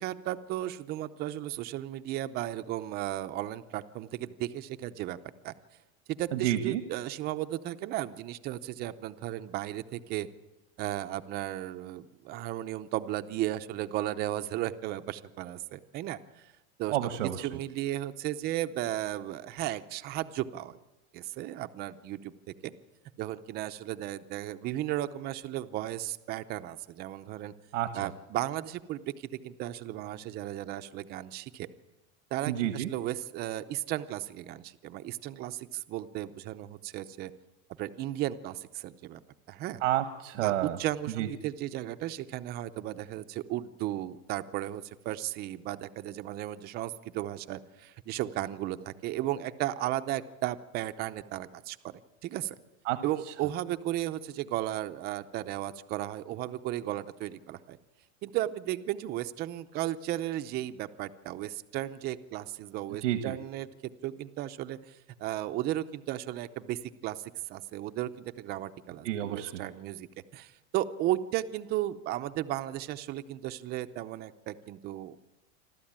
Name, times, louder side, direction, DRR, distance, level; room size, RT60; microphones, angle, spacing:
voice 1, 0.0-5.2 5.4-5.5 6.1-10.3 10.8-16.5 16.8-17.0 17.4-20.8 21.1-22.7 23.2-27.5 27.9-31.7 32.3-37.3 37.8-39.2 39.5-39.8 40.3-52.6 53.0-57.8 58.2-70.1 70.3-75.2, right 14 dB, 25° right, 10 dB, 0.7 m, -35 dB
voice 2, 6.3-6.8 16.9-17.5 27.7-28.1 32.5-32.9 39.8-40.8 41.2-41.3 52.9-53.0 63.0-63.3 69.0-69.6, right 12 dB, 90° right, 8 dB, 1.4 m, -30 dB
27.0 x 13.0 x 8.8 m, 1.1 s
supercardioid pair, 165°, 36 cm